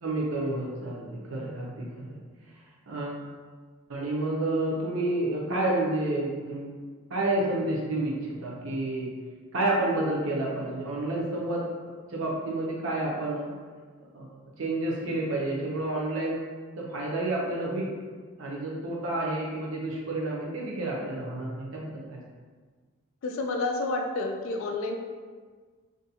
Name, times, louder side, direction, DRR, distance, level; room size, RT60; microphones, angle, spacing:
voice 1, 0.0-2.2 2.9-3.2 3.9-6.7 7.1-9.1 9.5-11.6 12.1-13.5 14.1-14.3 14.6-16.4 16.8-17.9 18.4-22.2, right 2 dB, 65° right, -3 dB, 0.6 m, -29 dB
voice 2, 23.2-25.0, left 2 dB, 65° left, 3 dB, 0.3 m, -29 dB
2.5 x 2.3 x 2.7 m, 1.5 s
head